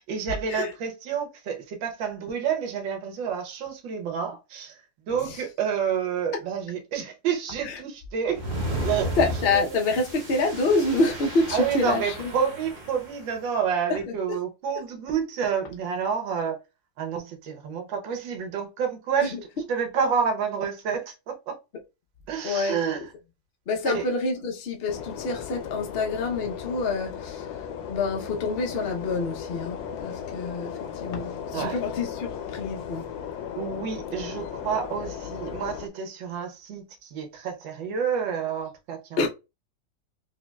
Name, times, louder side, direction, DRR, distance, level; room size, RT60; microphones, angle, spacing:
voice 1, 0.0-4.8 5.1-8.4 8.8-9.8 11.5-16.6 17.0-19.4 19.7-21.6 22.3-23.1 23.8-24.0 31.5-31.8 33.6-39.3, right 7 dB, 80° right, 1.7 m, -29 dB
sound 1, 8.3-13.2, right 1 dB, 40° right, 0.6 m, -34 dB
voice 2, 9.2-12.3 13.9-14.1 22.4-23.1 23.7-33.1 39.2-39.3, left 3 dB, 50° left, 0.7 m, -27 dB
sound 2, 24.9-35.9, left 8 dB, 85° left, 1.4 m, -36 dB
5.1 x 2.8 x 2.3 m
omnidirectional pair, 2.0 m